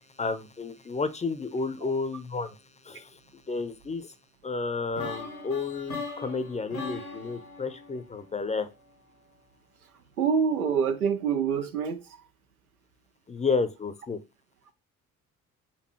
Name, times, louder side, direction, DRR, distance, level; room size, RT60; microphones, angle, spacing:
voice 1, 0.2-2.6 2.8-3.2 3.5-4.1 4.4-8.7 13.3-14.2, left 4 dB, 15° left, 0.6 m, -31 dB
sound 1, 4.9-8.9, left 3 dB, 90° left, 1.1 m, -40 dB
voice 2, 10.2-12.0, right 6 dB, 85° right, 0.6 m, -25 dB
4.3 x 2.7 x 3.1 m
figure-of-eight pair, 50°, 42 cm